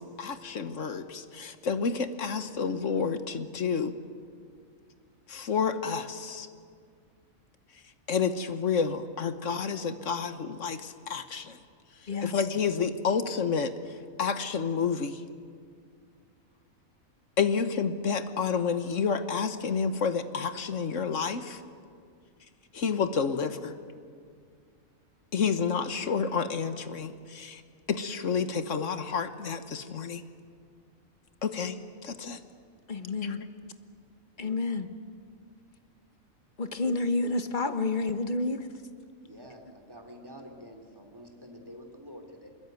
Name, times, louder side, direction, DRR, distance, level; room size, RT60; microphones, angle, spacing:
voice 1, 0.0-3.9 5.3-6.5 8.1-11.6 12.0-15.2 17.4-21.6 22.7-23.8 25.3-27.6 27.9-30.2 31.4-31.8 32.0-32.4 33.2-33.4, left 6 dB, 65° left, 10 dB, 1.5 m, -30 dB
voice 2, 32.9-33.4 34.4-34.9 36.6-38.7, left 3 dB, 35° left, 9 dB, 1.2 m, -29 dB
voice 3, 39.2-42.5, equal, 15° right, 3 dB, 2.9 m, -48 dB
24.0 x 21.5 x 9.3 m, 2.1 s
omnidirectional pair, 1.4 m